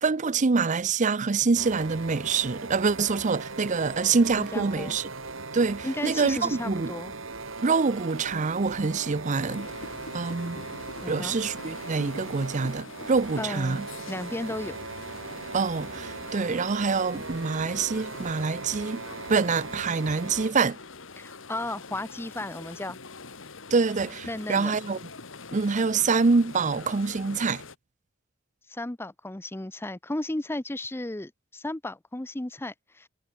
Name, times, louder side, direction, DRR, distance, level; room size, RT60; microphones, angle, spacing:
voice 1, 0.0-5.1 5.5-6.9 7.6-9.7 10.1-10.6 11.1-13.9 15.5-19.0 19.3-20.8 23.7-25.0 25.5-27.6, right 4 dB, 40° right, 0.6 m, -25 dB
sound 1, 1.6-20.5, right 3 dB, 75° right, 3.1 m, -39 dB
voice 2, 4.4-5.0 5.8-7.1 11.0-11.4 13.4-14.8 21.2-23.0 24.3-24.7 28.7-33.1, left 1 dB, 10° left, 0.7 m, -34 dB
sound 2, 9.3-27.7, left 4 dB, 70° left, 2.0 m, -44 dB
head